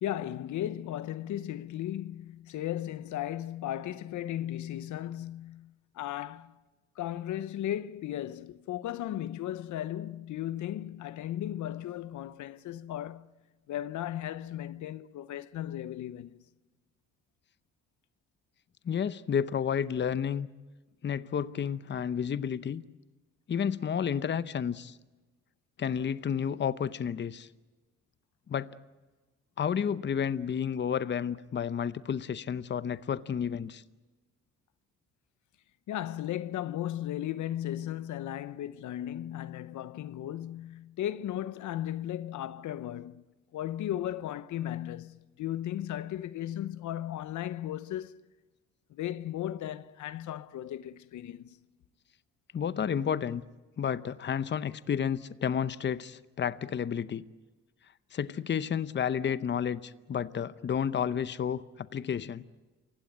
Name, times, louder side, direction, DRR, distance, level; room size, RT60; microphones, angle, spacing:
voice 1, 0.0-6.6 7.0-13.3 13.7-16.4 35.9-43.2 43.5-48.2 48.9-51.6, left 12 dB, 75° left, 0.8 m, -36 dB
voice 2, 18.8-20.5 21.0-22.8 23.5-25.0 25.8-27.5 28.5-28.8 29.6-33.8 52.5-53.4 53.8-57.2 58.1-62.4, left 8 dB, 40° left, 0.8 m, -31 dB
28.0 x 16.5 x 9.4 m
cardioid pair, 90°, 30 cm